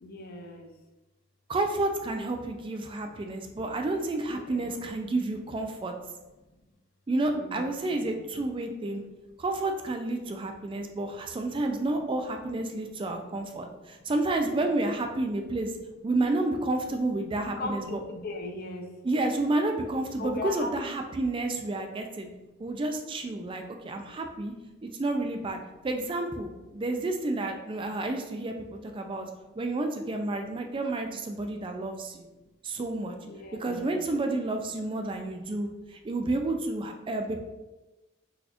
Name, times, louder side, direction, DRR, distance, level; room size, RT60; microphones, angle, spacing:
voice 1, 0.0-0.7 4.3-4.8 7.3-8.1 14.5-14.6 17.4-18.9 20.2-21.0 33.2-34.0, left 2 dB, 45° left, 3 dB, 0.5 m, -38 dB
voice 2, 1.5-5.9 7.1-9.0 9.4-15.7 16.0-18.0 19.0-22.3 22.6-24.5 24.8-25.6 25.8-29.3 29.6-32.3 32.6-33.1 33.6-37.4, right 2 dB, 25° right, 4 dB, 0.3 m, -30 dB
4.0 x 2.4 x 2.8 m, 1.1 s
head